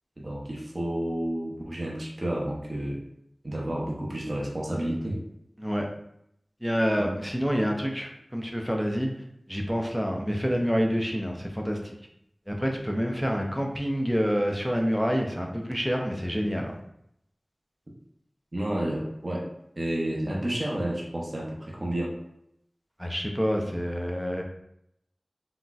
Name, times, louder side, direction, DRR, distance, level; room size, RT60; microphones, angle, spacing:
voice 1, 0.2-3.0 3.4-5.2 7.0-7.1 18.5-19.5 19.8-22.2, right 1 dB, 50° right, -3 dB, 0.6 m, -30 dB
voice 2, 6.6-9.1 9.5-12.0 12.5-16.7 23.0-24.4, equal, ahead, 1 dB, 0.5 m, -27 dB
3.9 x 2.1 x 2.3 m, 0.76 s
wide cardioid pair, 55°, 0 cm